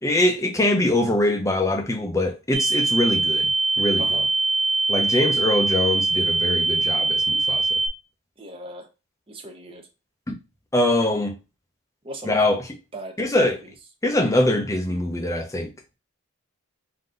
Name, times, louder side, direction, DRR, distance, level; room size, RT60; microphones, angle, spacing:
voice 1, 0.0-3.5 3.8-4.2 4.9-7.6 10.3-10.4 10.7-11.4 12.2-12.7 13.2-13.6 14.0-15.7, left 1 dB, 15° left, 0.6 m, -23 dB
sound 1, 2.5-7.9, right 3 dB, 90° right, 1.3 m, -22 dB
voice 2, 4.0-4.3 8.4-8.9 9.3-9.8 12.0-12.6 12.9-13.6, right 1 dB, 25° right, 0.7 m, -37 dB
3.9 x 2.7 x 3.8 m
head